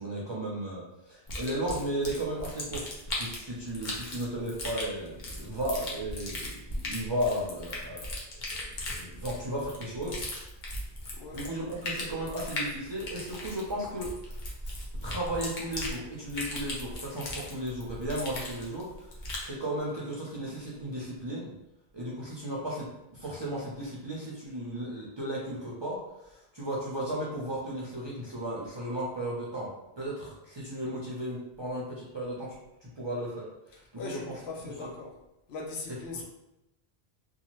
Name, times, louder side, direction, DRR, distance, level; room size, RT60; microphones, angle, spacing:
voice 1, 0.0-2.8 3.1-8.1 8.5-8.6 8.8-10.2 11.3-14.8 15.0-19.1 19.4-21.5 21.9-29.7 30.0-32.5 32.8-34.9 35.9-36.2, right 1 dB, 40° right, -6 dB, 0.4 m, -35 dB
sound 1, 1.3-19.5, left 1 dB, 50° left, 0.7 m, -38 dB
voice 2, 34.0-35.1 35.5-36.2, left 3 dB, 80° left, 0 dB, 0.9 m, -39 dB
2.7 x 2.3 x 2.9 m, 0.90 s
omnidirectional pair, 1.1 m